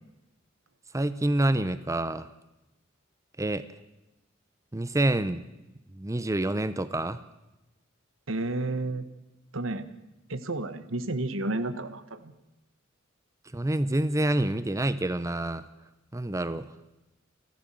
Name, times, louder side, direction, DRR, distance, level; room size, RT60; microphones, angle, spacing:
voice 1, 0.9-2.3 3.4-3.7 4.7-5.4 5.9-7.2 13.5-15.6 16.1-16.7, right 1 dB, 15° right, 14 dB, 0.7 m, -27 dB
voice 2, 8.3-9.1 9.5-10.0 10.3-12.3, right 2 dB, 80° right, 12 dB, 1.3 m, -31 dB
28.0 x 12.5 x 7.6 m, 0.97 s
head